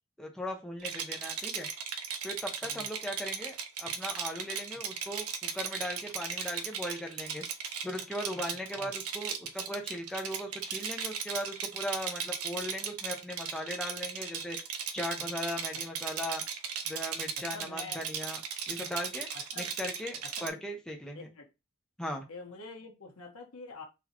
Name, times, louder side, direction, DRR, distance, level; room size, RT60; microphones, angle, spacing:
voice 1, 0.2-1.7 2.2-7.4 7.8-16.4 16.9-18.4 18.7-19.3 19.6-21.3 22.0-22.2, equal, 5° left, 0.7 m, -38 dB
Rattle, 0.8-20.5, right 7 dB, 85° right, 0.6 m, -37 dB
voice 2, 17.5-18.0 19.3-19.7 20.2-20.6 21.1-21.5 22.3-23.8, left 3 dB, 80° left, 1.3 m, -46 dB
4.0 x 2.9 x 2.9 m
head